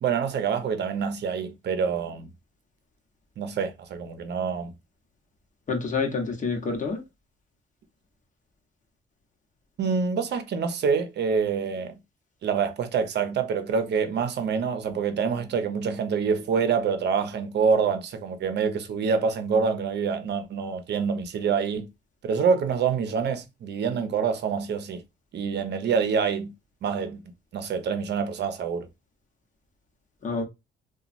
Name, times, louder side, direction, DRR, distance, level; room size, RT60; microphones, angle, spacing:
voice 1, 0.0-2.3 3.4-4.7 9.8-11.9 12.4-21.9 22.2-25.0 25.3-26.5 26.8-27.2 27.5-28.9, right 6 dB, 60° right, 0.6 m, -26 dB
voice 2, 5.7-7.0 30.2-30.4, left 4 dB, 40° left, 0.9 m, -27 dB
2.9 x 2.3 x 2.4 m
cardioid pair, 90°, 20 cm